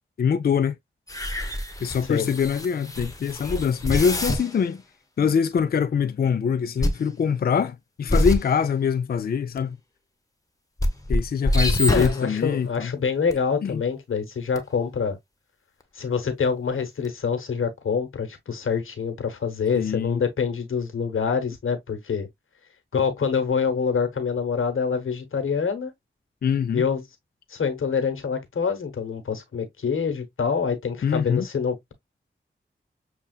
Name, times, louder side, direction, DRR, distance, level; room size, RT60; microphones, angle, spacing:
voice 1, 0.2-0.7 1.8-4.8 5.2-9.8 11.1-12.9 13.6-13.8 19.7-20.2 26.4-26.8 31.0-31.5, left 7 dB, 50° left, 0.4 m, -24 dB
sound 1, 1.1-4.6 5.6-5.7 6.8-7.1 8.1-8.5 9.6-9.7 10.8-12.4 13.3-13.4 14.6-14.7 17.0-17.1, left 1 dB, 15° left, 1.0 m, -26 dB
voice 2, 11.9-15.2 15.9-22.3 22.9-25.9 26.7-27.0 27.5-31.9, left 6 dB, 90° left, 1.0 m, -26 dB
6.6 x 2.3 x 2.3 m
cardioid pair, 55°, 20 cm